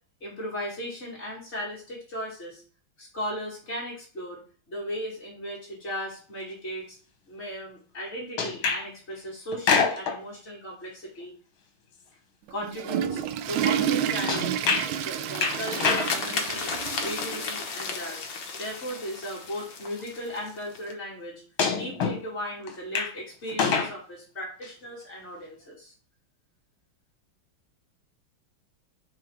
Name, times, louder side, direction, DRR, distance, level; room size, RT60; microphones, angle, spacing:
voice 1, 0.2-2.6 3.0-4.4 4.7-7.0 7.3-11.3 12.5-13.2 13.5-14.7 15.0-16.7 17.0-18.3 18.6-21.4 21.7-25.9, equal, 35° left, -5 dB, 3.1 m, -36 dB
sound 1, 8.4-8.9 9.5-10.2 14.3-14.9 15.4-16.2 18.0-18.1 19.3-19.4 21.6-22.2 22.7-23.1 23.5-23.9 24.6-24.7, left 5 dB, 80° left, 2.0 m, -25 dB
Water / Toilet flush, 12.5-17.5 17.8-17.9 18.6-18.7 20.0-20.1, right 9 dB, 90° right, 1.5 m, -30 dB
sound 2, 14.8-20.9, left 4 dB, 65° left, 1.6 m, -35 dB
5.8 x 4.9 x 4.7 m, 0.41 s
omnidirectional pair, 2.2 m